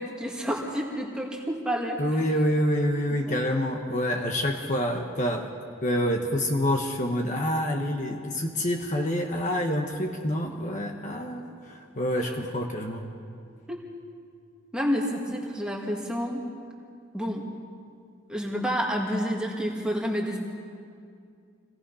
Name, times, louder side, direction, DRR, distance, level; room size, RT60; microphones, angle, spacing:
voice 1, 0.0-2.0 13.7-13.8 14.7-16.4 17.1-17.4 18.3-20.4, equal, 5° right, -1 dB, 2.2 m, -29 dB
voice 2, 2.0-5.5 5.8-13.1, equal, 35° left, 2 dB, 1.2 m, -27 dB
26.5 x 18.0 x 5.7 m, 2.3 s
head